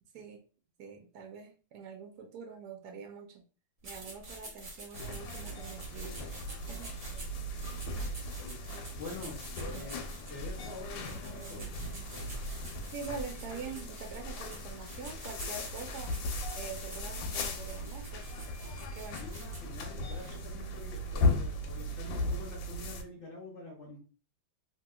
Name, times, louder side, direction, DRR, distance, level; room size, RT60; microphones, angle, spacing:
voice 1, 0.8-3.4 3.8-6.3 6.7-6.9 9.1-9.2 9.6-10.0 10.3-12.4 12.9-18.3 18.9-19.2, right 5 dB, 70° right, 3 dB, 1.0 m, -45 dB
sound 1, 3.8-20.5, right 1 dB, 45° right, 0.9 m, -49 dB
sound 2, 4.9-23.0, left 1 dB, 85° left, 1.3 m, -37 dB
voice 2, 8.3-8.6 8.9-9.4 9.7-11.8 19.2-24.0, left 3 dB, 65° left, -2 dB, 0.7 m, -46 dB
2.9 x 2.8 x 2.2 m, 0.36 s
omnidirectional pair, 2.0 m